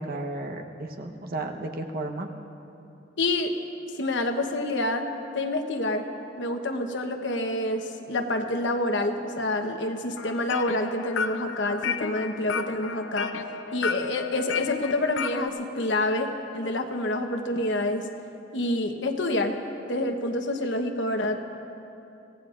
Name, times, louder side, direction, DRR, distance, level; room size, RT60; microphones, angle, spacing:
voice 1, 0.0-2.3, right 2 dB, 55° right, 4 dB, 1.0 m, -33 dB
voice 2, 3.2-3.5 4.0-5.1 5.3-6.1 6.4-13.3 13.7-18.1 18.5-19.6 19.9-21.3, left 2 dB, 70° left, 5 dB, 1.1 m, -27 dB
sound 1, 10.2-15.5, left 6 dB, 90° left, 0.6 m, -33 dB
25.0 x 17.5 x 2.5 m, 2.8 s
head